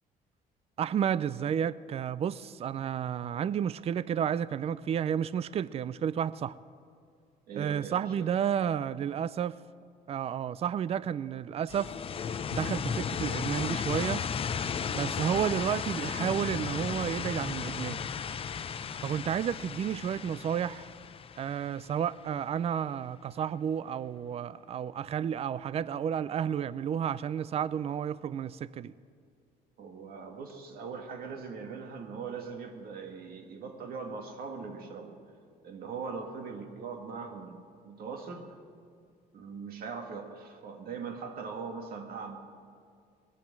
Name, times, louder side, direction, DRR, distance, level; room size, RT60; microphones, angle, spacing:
voice 1, 0.8-6.6 7.6-9.6 10.1-11.9 12.5-14.2 14.6-18.1 19.0-20.9 21.4-28.9, right 8 dB, 35° right, 0.4 m, -31 dB
voice 2, 7.5-8.1 29.8-35.2 35.6-37.6 37.8-38.5 39.3-42.4, right 5 dB, 60° right, 1.7 m, -40 dB
sound 1, 11.7-22.4, left 7 dB, 35° left, 0.6 m, -35 dB
20.0 x 9.0 x 7.6 m
cardioid pair, 110°, 17 cm